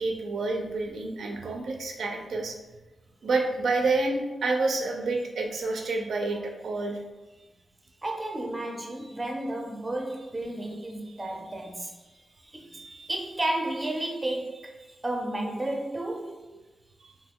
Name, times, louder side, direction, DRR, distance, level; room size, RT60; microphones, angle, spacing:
voice 1, 0.0-2.6 3.2-7.0, right 3 dB, 85° right, 2 dB, 0.4 m, -28 dB
voice 2, 8.0-11.9 12.4-16.5, right 1 dB, 20° right, 1 dB, 0.4 m, -32 dB
2.7 x 2.2 x 3.5 m, 1.1 s
wide cardioid pair, 125°, 0 cm